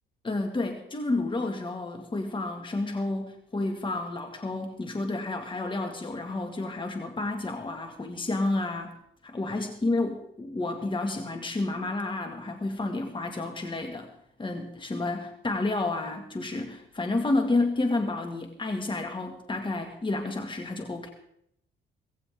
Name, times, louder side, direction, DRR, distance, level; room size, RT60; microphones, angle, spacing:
voice 1, 0.2-8.9 9.2-14.1 14.4-21.1, left 2 dB, 25° left, 4 dB, 2.0 m, -30 dB
17.5 x 16.0 x 3.7 m, 0.72 s
cardioid pair, 90°, 20 cm